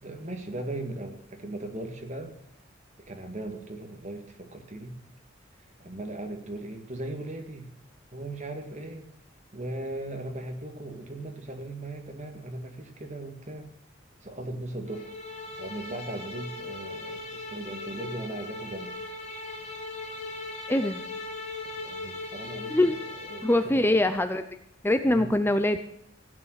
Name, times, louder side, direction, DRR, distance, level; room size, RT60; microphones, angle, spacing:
voice 1, 0.0-2.3 3.0-5.0 5.8-7.7 8.1-9.1 9.5-13.7 14.2-15.1 15.5-19.0 21.8-24.0 25.0-25.3, right 1 dB, 35° right, 4 dB, 2.1 m, -38 dB
sound 1, 14.9-23.7, left 2 dB, 35° left, 2.6 m, -39 dB
voice 2, 20.7-21.0 22.7-23.0 23.4-24.4 24.8-25.8, left 1 dB, 10° left, 9 dB, 0.6 m, -23 dB
16.0 x 8.9 x 6.5 m, 0.73 s
head